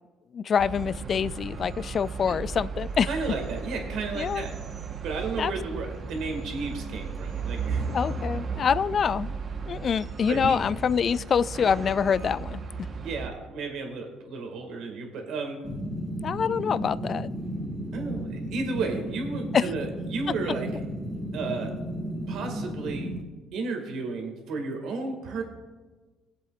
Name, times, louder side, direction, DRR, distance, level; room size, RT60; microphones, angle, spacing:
voice 1, 0.3-3.1 4.2-4.5 5.4-5.5 7.9-9.3 9.7-12.6 16.2-17.3 19.5-19.6, left 7 dB, 50° left, 18 dB, 0.3 m, -25 dB
sound 1, 0.6-13.3, right 4 dB, 50° right, 1.1 m, -35 dB
voice 2, 3.0-4.5 5.0-7.9 10.3-10.6 13.0-15.6 17.9-20.7 21.3-21.7 22.3-23.1 23.5-25.4, right 4 dB, 75° right, 3 dB, 1.9 m, -33 dB
sound 2, 15.6-23.2, right 1 dB, 15° left, 1.8 m, -34 dB
21.0 x 7.7 x 2.4 m, 1.3 s
supercardioid pair, 80°, 0 cm